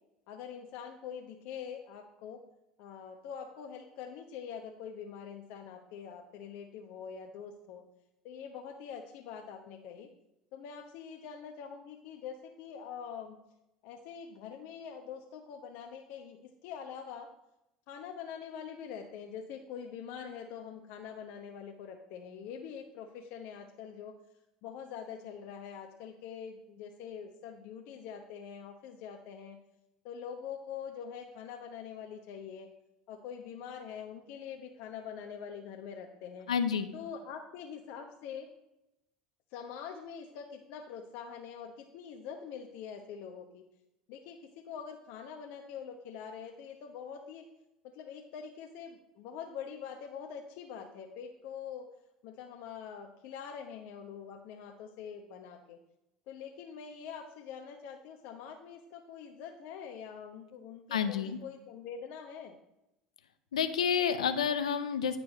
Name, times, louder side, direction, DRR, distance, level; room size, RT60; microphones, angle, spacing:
voice 1, 0.3-2.4 2.8-7.8 8.2-10.1 10.5-13.4 13.8-17.3 17.9-24.1 24.6-29.6 30.0-32.7 33.1-36.5 36.9-38.5 39.5-43.6 44.1-47.4 47.9-51.9 52.2-55.8 56.3-61.2 61.4-62.6, left 7 dB, 65° left, 3 dB, 0.9 m, -44 dB
voice 2, 36.5-36.9 60.9-61.4 63.5-65.2, left 7 dB, 85° left, 10 dB, 0.7 m, -29 dB
10.5 x 4.6 x 5.3 m, 0.88 s
hypercardioid pair, 70°, 3 cm